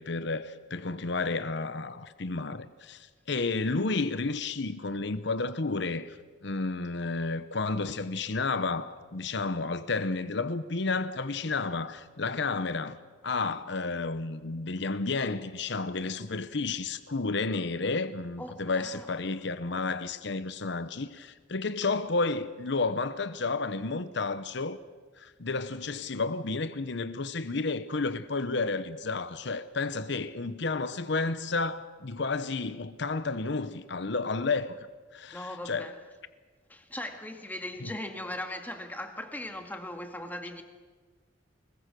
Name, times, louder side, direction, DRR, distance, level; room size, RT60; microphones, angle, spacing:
voice 1, 0.0-6.2 6.4-13.0 13.2-24.8 25.2-34.8 35.1-35.9 37.8-37.9, left 3 dB, 65° left, 1.0 m, -31 dB
voice 2, 18.4-19.1 35.3-36.0 36.7-40.6, left 1 dB, 10° left, 2.0 m, -39 dB
25.0 x 21.5 x 6.3 m
head